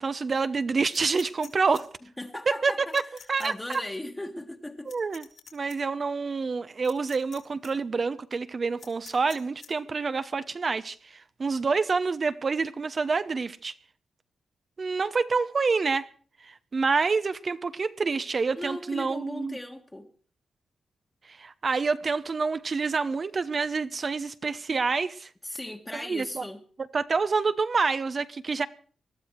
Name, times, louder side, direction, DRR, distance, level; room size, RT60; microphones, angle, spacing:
voice 1, 0.0-1.9 2.5-3.0 3.3-3.5 4.9-5.3 5.5-13.7 14.8-16.1 16.4-19.6 21.3-25.3 25.9-26.4 26.9-28.7, right 4 dB, 45° right, 0.8 m, -27 dB
sound 1, 0.9-1.8 2.9-3.5 3.7-3.8 4.9-5.8 6.8-7.4 7.6-7.7 8.8-9.7, left 6 dB, 75° left, 3.5 m, -47 dB
voice 2, 2.2-3.0 3.4-4.9 18.5-20.1 25.4-26.6, left 1 dB, 15° left, 1.6 m, -37 dB
20.5 x 13.0 x 4.6 m
cardioid pair, 75°, 0 cm